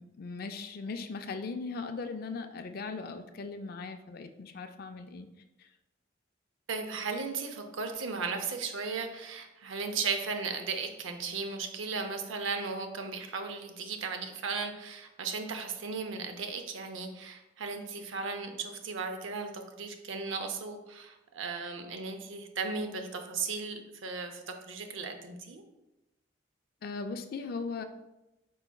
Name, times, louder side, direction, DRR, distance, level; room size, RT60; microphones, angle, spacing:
voice 1, 0.0-5.3 5.6-5.7 26.8-27.8, left 4 dB, 50° left, 7 dB, 0.3 m, -38 dB
voice 2, 6.7-25.6, right 4 dB, 85° right, 5 dB, 0.6 m, -36 dB
4.6 x 4.5 x 2.2 m, 0.98 s
head